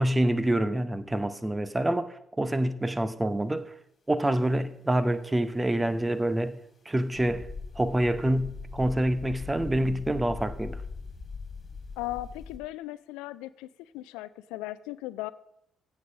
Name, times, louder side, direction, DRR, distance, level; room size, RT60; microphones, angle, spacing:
voice 1, 0.0-3.7 4.1-6.6 6.9-7.5 7.8-10.8, right 1 dB, 15° right, 0.8 m, -27 dB
sound 1, 7.1-12.6, left 4 dB, 35° left, 2.6 m, -40 dB
voice 2, 12.0-13.7 13.9-15.3, left 16 dB, 70° left, 0.3 m, -37 dB
16.0 x 5.6 x 5.1 m
figure-of-eight pair, 45°, 0 cm